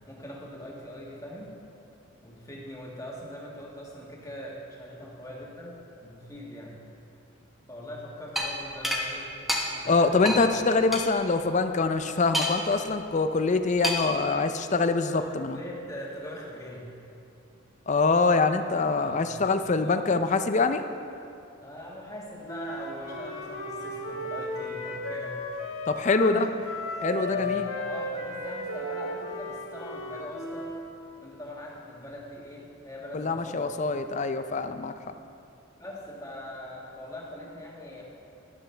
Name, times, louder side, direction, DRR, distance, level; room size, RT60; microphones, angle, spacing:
voice 1, 0.1-1.6 2.2-6.8 7.7-9.3 9.7-10.5 15.0-16.9 18.3-18.5 18.9-20.1 21.6-25.4 26.2-26.5 27.3-30.7 31.2-33.7 35.8-38.0, left 1 dB, 15° left, -3 dB, 1.6 m, -41 dB
sound 1, 8.4-8.5 8.8-9.0 9.5-9.6 10.3-10.4 10.9-11.0 12.3-12.7 13.8-14.2, equal, ahead, 0.9 m, -27 dB
voice 2, 9.8-15.6 17.9-20.8 25.9-26.5 27.0-27.7 33.1-34.9, left 3 dB, 35° left, 9 dB, 0.4 m, -24 dB
Wind instrument woodwind instrument, 22.5-30.9, left 1 dB, 60° left, 1.5 m, -35 dB
12.5 x 11.5 x 3.3 m, 2.6 s
head